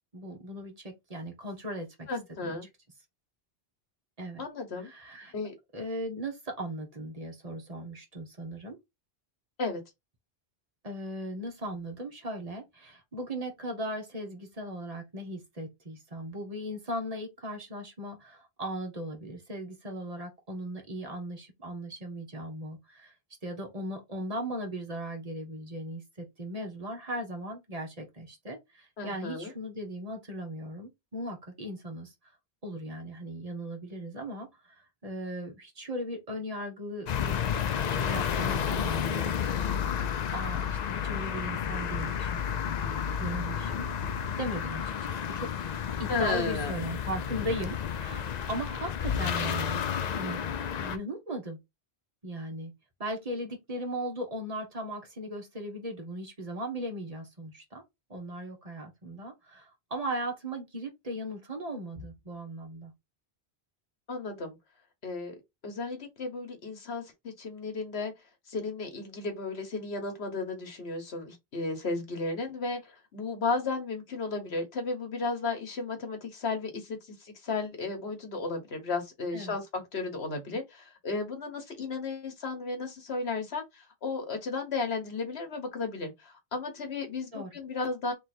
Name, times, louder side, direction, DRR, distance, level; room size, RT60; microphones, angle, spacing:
voice 1, 0.1-2.1 2.4-2.6 4.2-4.4 4.8-5.3 5.7-8.8 10.8-23.1 23.4-32.1 32.6-34.7 35.0-37.4 37.9-39.6 40.3-42.9 43.2-43.9 44.4-49.8 50.1-50.4 50.7-51.6 52.2-52.7 53.0-57.8 58.1-62.9 79.3-79.6 87.3-87.5, right 1 dB, 35° right, 1.2 m, -38 dB
voice 2, 2.1-2.7 4.4-4.9 5.3-5.5 9.6-9.8 29.0-29.5 46.1-46.8 64.1-64.6 65.0-65.4 65.6-68.1 68.5-88.1, left 3 dB, 70° left, 1.5 m, -34 dB
sound 1, 37.1-51.0, left 8 dB, 55° left, 0.5 m, -31 dB
3.2 x 3.1 x 4.2 m
omnidirectional pair, 1.1 m